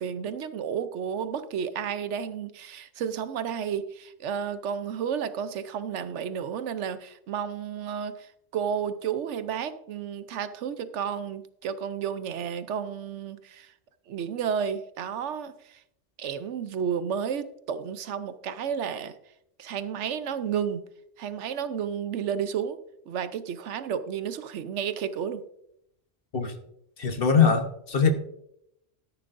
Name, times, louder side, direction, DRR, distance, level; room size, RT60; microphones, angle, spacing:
voice 1, 0.0-13.7 14.1-15.8 16.2-19.1 19.6-20.8 21.2-22.8 23.1-25.4, right 7 dB, 75° right, 12 dB, 1.0 m, -32 dB
voice 2, 27.0-28.1, left 6 dB, 50° left, 7 dB, 1.2 m, -22 dB
13.0 x 10.5 x 2.6 m, 0.76 s
omnidirectional pair, 1.2 m